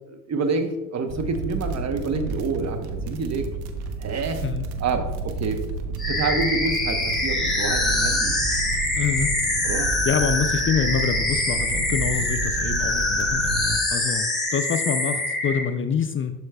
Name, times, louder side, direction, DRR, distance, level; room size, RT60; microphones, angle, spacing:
voice 1, 0.1-3.4 4.0-4.4 4.8-5.6 6.1-8.4 9.6-10.0 13.2-13.3, right 4 dB, 40° right, 7 dB, 1.1 m, -28 dB
sound 1, 1.1-13.8, right 4 dB, 70° right, 1.0 m, -31 dB
sound 2, 6.0-15.7, left 2 dB, ahead, 2.5 m, -24 dB
voice 2, 9.0-9.3 10.1-16.3, left 7 dB, 30° left, 9 dB, 0.5 m, -26 dB
12.0 x 4.9 x 2.3 m, 1.1 s
hypercardioid pair, 65°, 41 cm